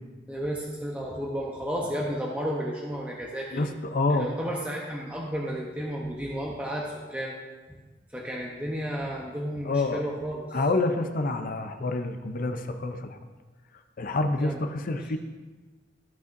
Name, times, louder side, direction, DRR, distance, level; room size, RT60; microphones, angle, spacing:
voice 1, 0.3-3.6 4.1-7.3 8.1-10.5 14.4-14.8, equal, 10° right, -3 dB, 0.8 m, -32 dB
voice 2, 3.5-4.3 9.6-10.0 10.5-13.2 14.0-15.2, left 2 dB, 50° left, 7 dB, 0.6 m, -27 dB
14.5 x 5.5 x 2.6 m, 1.3 s
head